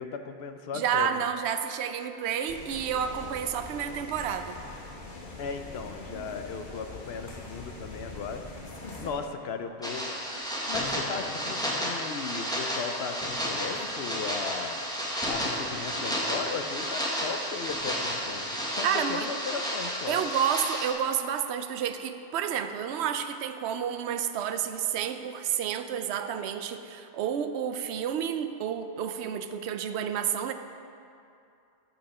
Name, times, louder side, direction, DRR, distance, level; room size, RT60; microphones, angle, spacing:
voice 1, 0.0-1.3 5.4-8.4 9.0-10.1 10.7-14.8 15.2-20.2, left 5 dB, 65° left, 7 dB, 0.8 m, -36 dB
voice 2, 0.7-4.6 18.8-19.3 20.1-30.5, right 8 dB, 70° right, 9 dB, 0.8 m, -30 dB
sound 1, 2.5-9.1, left 2 dB, 45° left, 1.2 m, -43 dB
sound 2, 9.8-20.9, equal, 5° left, 1.1 m, -32 dB
14.0 x 5.8 x 4.2 m, 2.6 s
omnidirectional pair, 1.2 m